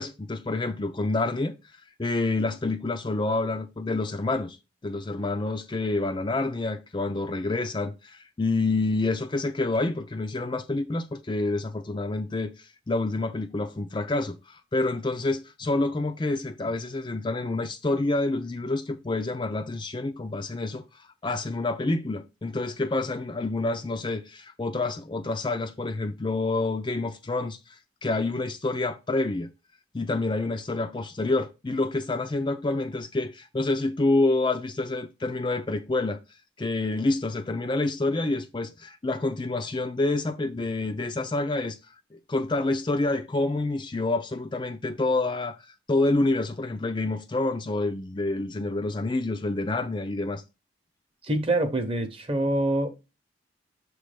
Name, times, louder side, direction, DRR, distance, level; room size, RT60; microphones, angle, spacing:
voice 1, 0.0-1.5 2.0-4.6 4.8-29.5 29.9-36.2 36.6-41.8 42.1-50.4, left 2 dB, 25° left, 0.4 m, -28 dB
voice 2, 51.2-53.0, right 1 dB, 30° right, 0.9 m, -25 dB
6.9 x 3.2 x 5.0 m
head